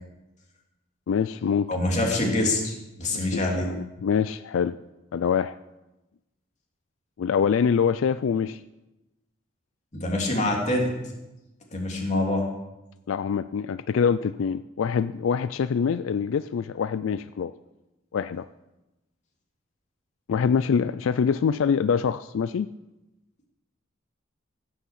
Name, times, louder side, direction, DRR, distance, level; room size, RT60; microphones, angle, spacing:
voice 1, 1.1-1.7 3.1-4.8 5.1-5.6 7.2-8.6 13.1-17.5 18.1-18.5 20.3-22.7, left 6 dB, 80° left, 14 dB, 0.4 m, -25 dB
voice 2, 1.7-2.7 3.0-3.7 9.9-10.9 11.7-12.5, left 1 dB, 35° left, 0 dB, 2.8 m, -25 dB
15.5 x 6.4 x 7.5 m, 0.99 s
head